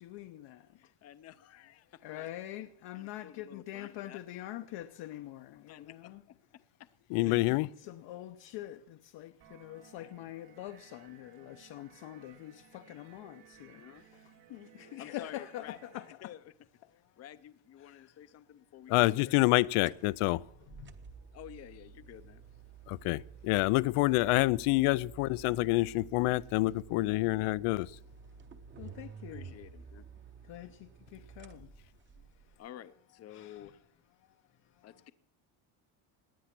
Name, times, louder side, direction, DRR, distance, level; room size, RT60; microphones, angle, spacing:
voice 1, 0.0-0.7 2.0-6.2 7.8-13.8 14.5-16.1 17.8-18.1 20.8-21.0 28.8-29.5 30.5-31.7 33.3-33.6, left 14 dB, 60° left, 0.8 m, -45 dB
voice 2, 0.7-2.3 2.9-4.2 5.7-6.4 7.1-7.9 10.0-10.1 13.6-14.0 15.0-15.8 16.2-16.5 17.2-19.4 21.3-22.4 29.3-30.1 32.6-33.8 34.8-35.1, left 11 dB, 30° left, 0.5 m, -51 dB
voice 3, 7.1-7.7 18.9-20.4 22.9-27.9, left 20 dB, 90° left, 0.6 m, -27 dB
sound 1, 9.4-16.1, right 10 dB, 85° right, 3.3 m, -59 dB
sound 2, 19.7-32.5, right 7 dB, 25° right, 0.8 m, -52 dB
18.0 x 10.5 x 6.0 m
cardioid pair, 175°, 50 cm